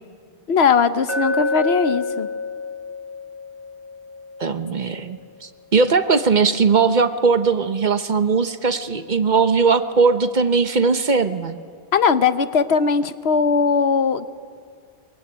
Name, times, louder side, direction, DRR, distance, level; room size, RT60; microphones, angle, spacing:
voice 1, 0.5-2.3 11.9-14.3, left 5 dB, 85° left, 12 dB, 1.2 m, -19 dB
Glass, 1.1-5.2, left 2 dB, 30° right, 1.9 m, -28 dB
voice 2, 4.4-11.6, right 4 dB, 50° right, 10 dB, 1.1 m, -19 dB
23.0 x 22.5 x 9.6 m, 2.2 s
omnidirectional pair, 1.0 m